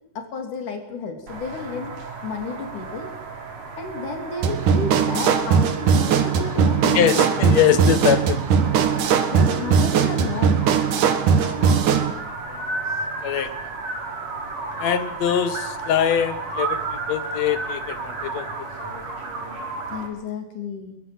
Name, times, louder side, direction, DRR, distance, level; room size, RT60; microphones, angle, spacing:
voice 1, 0.1-1.9 2.2-3.1 3.8-7.3 9.3-10.6 13.0-13.2 19.9-21.0, left 4 dB, 80° left, 5 dB, 4.7 m, -32 dB
sound 1, 1.3-20.1, right 3 dB, 60° right, 5.2 m, -33 dB
sound 2, 4.4-12.1, right 7 dB, 85° right, 3.2 m, -19 dB
voice 2, 6.9-8.4 12.5-12.6 13.2-13.5 14.8-18.5, left 9 dB, 65° left, 12 dB, 2.5 m, -22 dB
22.5 x 21.0 x 7.9 m, 0.76 s
omnidirectional pair, 3.5 m